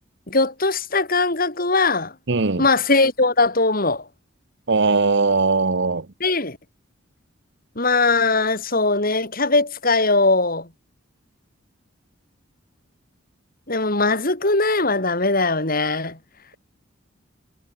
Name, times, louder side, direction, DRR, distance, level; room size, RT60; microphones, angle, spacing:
voice 1, 0.3-2.1 2.6-4.0 6.2-6.6 7.8-10.7 13.7-16.2, left 3 dB, 45° left, 4.5 m, -20 dB
voice 2, 2.3-2.6 4.7-6.0, right 3 dB, 60° right, 1.0 m, -19 dB
head